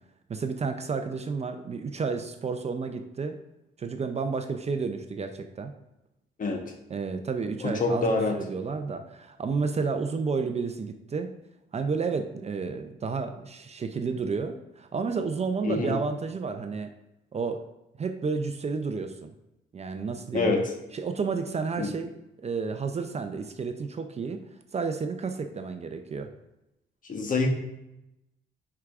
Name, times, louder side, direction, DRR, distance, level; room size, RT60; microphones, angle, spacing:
voice 1, 0.3-3.4 3.8-5.7 6.9-11.3 11.7-16.9 17.3-17.7 18.0-19.3 19.7-20.5 20.9-22.1 22.4-24.4 24.7-26.3, right 4 dB, 35° right, 7 dB, 0.5 m, -31 dB
voice 2, 7.6-8.4 15.6-16.0 20.3-20.7 21.8-21.9 27.1-27.5, left 3 dB, 40° left, 3 dB, 1.2 m, -26 dB
10.0 x 4.8 x 2.4 m, 0.91 s
cardioid pair, 90°, 20 cm